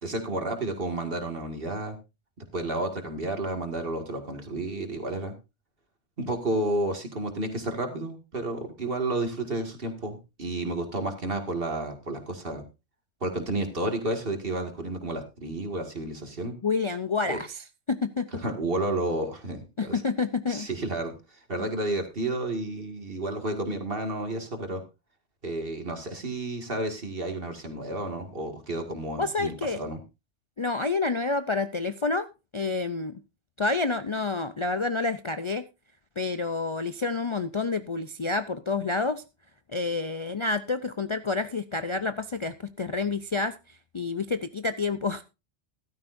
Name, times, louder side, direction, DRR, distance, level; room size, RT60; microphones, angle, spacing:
voice 1, 0.0-2.0 2.4-5.3 6.2-12.6 13.2-16.5 17.3-17.4 18.4-20.0 20.5-24.8 25.4-30.0, right 2 dB, 55° right, 5 dB, 2.3 m, -31 dB
voice 2, 16.6-18.4 19.8-20.7 29.2-29.8 30.6-32.3 32.5-33.2 33.6-35.7 36.2-39.2 39.7-45.2, left 3 dB, 40° left, 11 dB, 0.5 m, -29 dB
14.0 x 12.5 x 2.6 m, 0.27 s
omnidirectional pair, 1.1 m